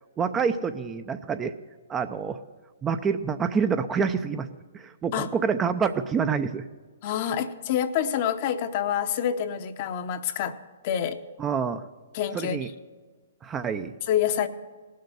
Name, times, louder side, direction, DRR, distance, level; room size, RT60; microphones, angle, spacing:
voice 1, 0.2-1.5 1.9-2.4 2.8-4.5 4.7-6.7 11.4-11.8 12.3-12.7 13.4-13.9, right 6 dB, 20° right, 9 dB, 0.5 m, -27 dB
voice 2, 7.0-10.6 10.8-11.2 12.1-12.6 14.1-14.5, left 9 dB, 45° left, 9 dB, 0.8 m, -27 dB
18.0 x 6.6 x 6.9 m, 1.4 s
hypercardioid pair, 125°, 0 cm